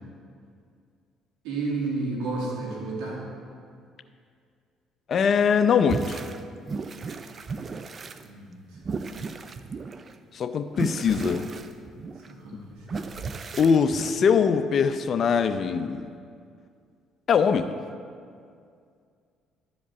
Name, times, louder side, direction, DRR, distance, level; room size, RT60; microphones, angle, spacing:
voice 1, 1.4-3.2 8.2-8.8 12.3-12.6 12.9-13.1, right 3 dB, 90° right, -3 dB, 2.5 m, -31 dB
voice 2, 5.1-6.2 10.3-11.5 13.6-16.1 17.3-17.7, left 6 dB, 50° left, 10 dB, 0.6 m, -22 dB
sound 1, 5.9-6.4 6.7-8.2 8.7-10.1 10.7-12.3 12.9-14.1, right 4 dB, 40° right, 0.6 m, -35 dB
12.0 x 5.2 x 7.0 m, 2.2 s
supercardioid pair, 80°, 0 cm